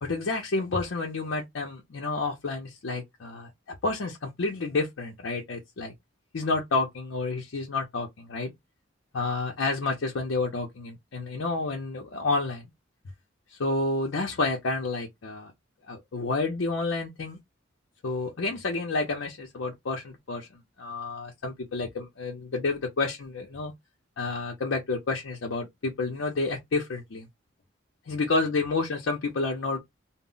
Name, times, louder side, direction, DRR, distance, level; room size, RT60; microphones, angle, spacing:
voice 1, 0.0-5.9 6.3-8.5 9.1-12.7 13.5-15.5 15.9-17.4 18.0-20.5 20.8-23.7 24.2-27.3 28.1-29.8, left 3 dB, 80° left, 0.6 m, -30 dB
2.1 x 2.0 x 3.7 m
head